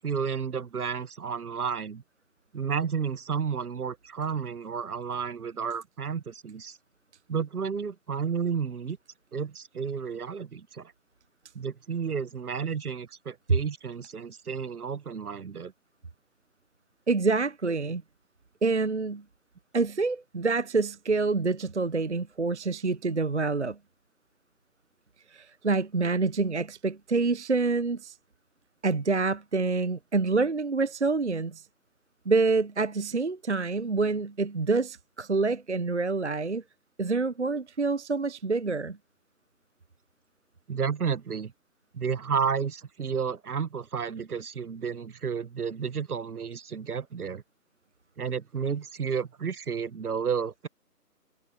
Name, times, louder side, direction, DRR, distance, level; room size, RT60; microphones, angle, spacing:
voice 1, 0.0-2.0 2.5-6.8 7.3-9.0 9.3-10.9 11.5-15.7 40.7-41.5 41.9-47.4 48.2-50.7, right 6 dB, 65° right, 1.0 m, -31 dB
voice 2, 17.1-18.0 18.6-19.2 19.7-23.8 25.3-28.2 28.8-31.6 32.3-36.6 37.0-39.0, right 3 dB, 50° right, 0.5 m, -27 dB
figure-of-eight pair, 160°, 48 cm